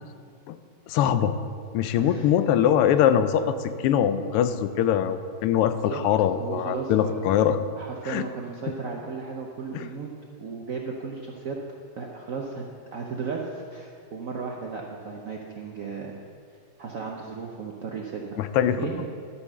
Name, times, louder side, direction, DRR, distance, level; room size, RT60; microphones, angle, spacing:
voice 1, 0.9-1.3 1.7-7.6 8.0-8.2 9.7-9.9 18.4-18.8, left 9 dB, 90° left, 11 dB, 1.5 m, -22 dB
voice 2, 2.0-2.3 5.9-6.0 6.4-7.1 7.8-10.1 10.4-11.6 11.9-12.6 12.9-16.1 16.8-19.1, right 5 dB, 70° right, 0 dB, 0.8 m, -35 dB
12.5 x 5.7 x 6.6 m, 2.3 s
omnidirectional pair, 2.4 m